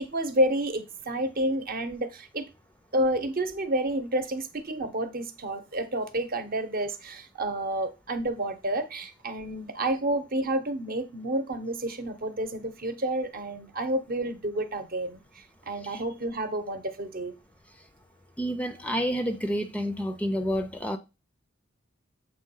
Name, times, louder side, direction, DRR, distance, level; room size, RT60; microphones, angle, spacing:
voice 1, 0.0-2.5 2.9-17.3, right 1 dB, 45° right, 0.9 m, -30 dB
voice 2, 18.4-21.0, equal, 5° left, 0.5 m, -29 dB
7.4 x 3.0 x 5.5 m
head